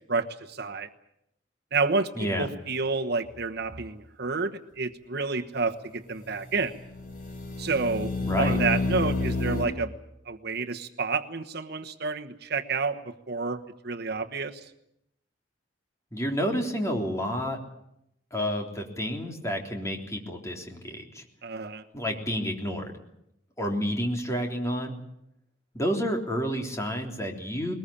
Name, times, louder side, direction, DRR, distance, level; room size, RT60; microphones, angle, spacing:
voice 1, 0.1-0.9 1.7-2.1 2.4-6.7 7.6-8.1 8.4-9.9 10.3-14.6 21.4-21.8, right 4 dB, 60° right, 6 dB, 1.2 m, -29 dB
voice 2, 2.2-2.5 8.2-8.6 16.1-17.6 18.3-21.2 21.9-23.0 23.6-25.0 25.7-27.7, equal, 15° left, 2 dB, 3.5 m, -30 dB
sound 1, 3.3-3.4 6.7-9.6, left 3 dB, 50° left, 4.4 m, -29 dB
21.0 x 20.5 x 8.7 m, 0.79 s
head